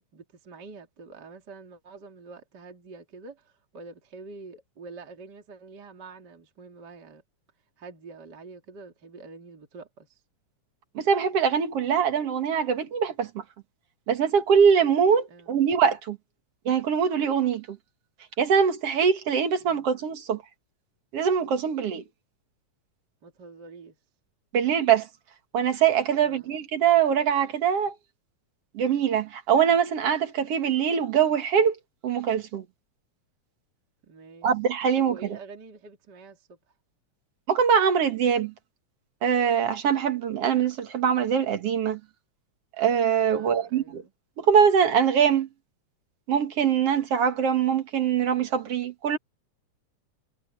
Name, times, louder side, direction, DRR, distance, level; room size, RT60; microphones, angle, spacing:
voice 1, 0.0-7.2 7.8-10.2 15.3-15.6 19.6-19.9 23.2-24.0 26.1-26.5 34.1-34.5 35.0-36.5 43.3-44.1, right 3 dB, 35° right, 2.9 m, -46 dB
voice 2, 11.0-13.4 14.1-16.2 16.7-17.8 18.4-20.4 21.1-22.0 24.5-25.1 25.5-27.9 28.7-31.8 32.0-32.6 34.4-35.2 37.5-38.5 39.2-42.0 42.8-44.0 44.4-45.5 46.3-49.2, right 7 dB, 55° right, 2.4 m, -23 dB
omnidirectional pair, 3.5 m